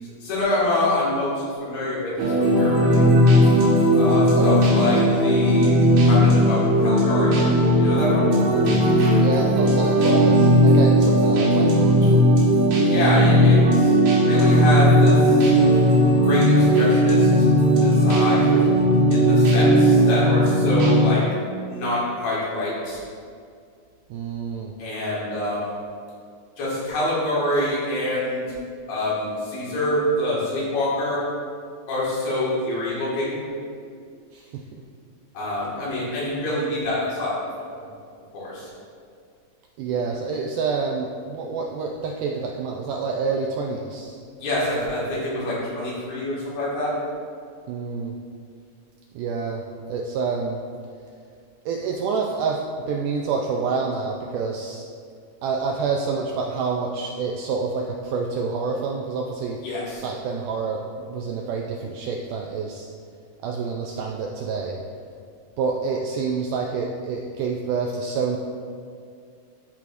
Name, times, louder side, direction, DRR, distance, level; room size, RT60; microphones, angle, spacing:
voice 1, 0.0-3.1 4.0-7.4 7.8-8.3 12.9-15.5 16.2-17.5 17.8-18.6 19.1-21.2 21.7-23.0 24.8-25.8 26.6-28.4 28.9-31.2 31.9-33.4 35.3-37.7 38.3-38.7 44.4-46.9 59.6-60.0, left 1 dB, 90° left, -8 dB, 3.9 m, -26 dB
sound 1, 2.2-21.1, equal, 60° right, 2.2 m, -17 dB
voice 2, 4.3-4.9 8.4-8.8 9.1-12.1 24.1-24.7 34.3-34.8 39.8-44.2 47.7-48.1 49.1-50.6 51.7-54.9 55.4-59.6 60.0-62.9 63.4-64.8 65.6-68.4, right 4 dB, 85° right, 0 dB, 1.8 m, -28 dB
13.5 x 4.7 x 2.6 m, 2.3 s
omnidirectional pair, 4.2 m